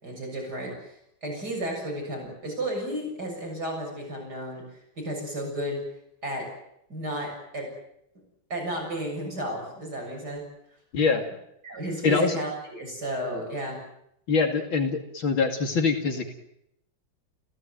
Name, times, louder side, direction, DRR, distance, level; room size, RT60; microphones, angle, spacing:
voice 1, 0.0-5.8 6.2-6.5 6.9-7.7 8.5-10.4 11.6-13.8, right 1 dB, 50° right, 0 dB, 7.7 m, -33 dB
voice 2, 10.9-11.2 12.0-12.3 14.3-16.3, left 4 dB, 80° left, 5 dB, 3.2 m, -24 dB
29.5 x 17.0 x 9.2 m, 0.78 s
omnidirectional pair, 2.2 m